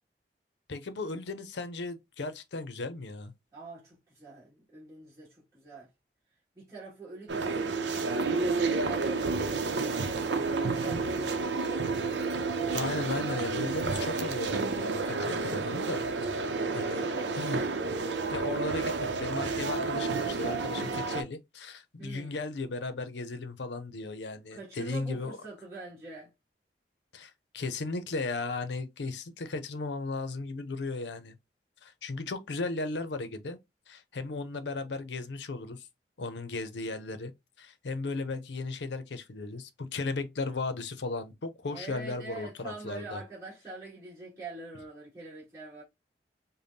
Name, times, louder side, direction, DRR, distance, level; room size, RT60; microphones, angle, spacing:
voice 1, 0.7-3.3 12.7-16.0 16.3-17.1 17.3-17.6 18.3-25.4 27.1-31.4 31.8-33.6 33.9-35.9 36.2-37.3 37.6-43.2, left 3 dB, 80° left, 0.6 m, -36 dB
voice 2, 3.5-5.9 6.5-9.8 10.4-11.0 16.9-17.8 22.0-22.4 24.5-26.3 41.7-45.8, right 2 dB, 15° right, 2.1 m, -45 dB
sound 1, 7.3-21.2, right 4 dB, 85° right, 0.7 m, -30 dB
5.1 x 2.2 x 2.7 m
head